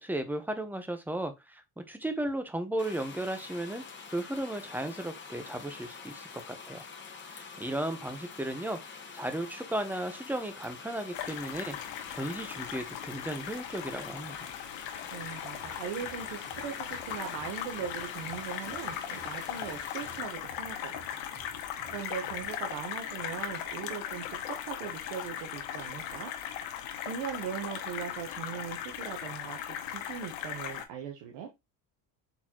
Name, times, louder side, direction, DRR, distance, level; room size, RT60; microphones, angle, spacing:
voice 1, 0.0-3.8 4.1-6.8 7.3-11.8 12.1-14.5, right 1 dB, 5° right, 0.8 m, -35 dB
sound 1, 2.8-20.2, left 5 dB, 25° left, 1.1 m, -47 dB
sound 2, 11.1-30.8, left 10 dB, 80° left, 1.0 m, -38 dB
voice 2, 15.1-21.6 21.9-26.3 27.0-31.5, right 8 dB, 85° right, 1.1 m, -40 dB
sound 3, 15.5-22.6, right 7 dB, 50° right, 1.2 m, -55 dB
4.2 x 4.0 x 2.9 m
cardioid pair, 110°, 46 cm